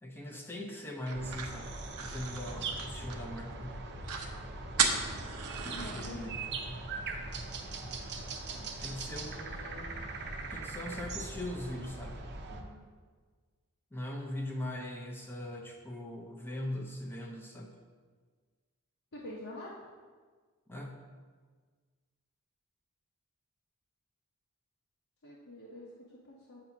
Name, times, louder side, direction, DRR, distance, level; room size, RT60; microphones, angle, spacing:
voice 1, 0.0-1.7 2.0-4.3 5.6-6.8 8.6-9.9 10.5-12.2 13.9-17.7 20.7-21.0, left 1 dB, 10° left, 0 dB, 0.6 m, -41 dB
sound 1, 1.1-12.6, right 3 dB, 50° right, 0.7 m, -41 dB
sound 2, 1.1-3.4 3.8-3.9 4.0-4.3 4.8-6.1, right 6 dB, 85° right, 0.7 m, -34 dB
voice 2, 5.7-6.3 12.5-12.8 19.1-19.7 25.2-25.9 26.3-26.6, left 1 dB, 55° left, -7 dB, 0.9 m, -46 dB
8.2 x 2.8 x 5.7 m, 1.5 s
head